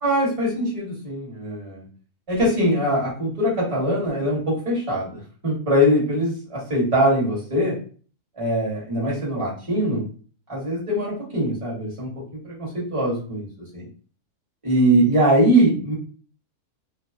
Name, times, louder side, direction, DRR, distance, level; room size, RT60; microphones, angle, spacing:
voice 1, 0.0-1.8 2.3-5.1 5.4-7.8 8.4-10.0 10.5-12.1 12.4-13.5 13.7-13.8 14.6-15.9, equal, 25° right, -5 dB, 1.2 m, -22 dB
2.8 x 2.2 x 2.4 m, 0.41 s
omnidirectional pair, 1.6 m